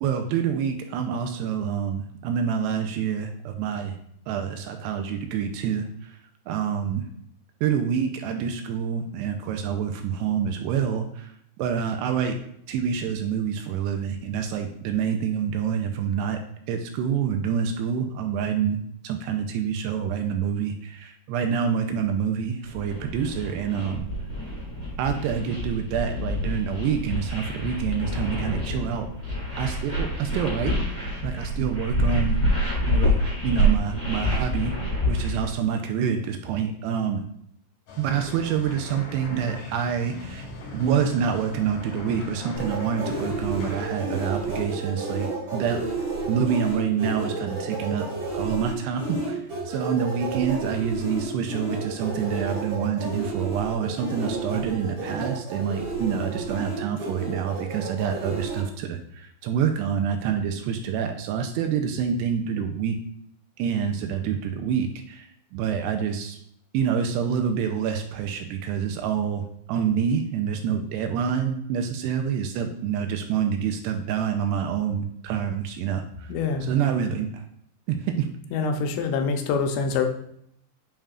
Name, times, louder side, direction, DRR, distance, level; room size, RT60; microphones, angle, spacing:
voice 1, 0.0-4.0 4.3-6.2 6.5-7.0 7.6-11.3 11.6-12.4 12.7-16.4 16.7-18.8 19.0-24.1 25.0-29.1 29.6-30.7 31.2-32.4 32.9-37.3 38.0-45.8 46.3-48.1 48.3-63.0 63.6-66.4 66.7-76.3 76.7-77.4 77.9-78.3, right 7 dB, 85° right, 5 dB, 2.5 m, -27 dB
sound 1, 22.6-35.5, equal, 15° left, 1.9 m, -27 dB
sound 2, 37.9-43.9, left 2 dB, 60° left, 2.1 m, -39 dB
sound 3, 42.6-58.6, right 2 dB, 35° right, 2.5 m, -31 dB
voice 2, 76.3-76.7 78.5-80.1, left 5 dB, 85° left, 6 dB, 2.9 m, -25 dB
8.7 x 5.5 x 2.4 m, 0.70 s
omnidirectional pair, 5.1 m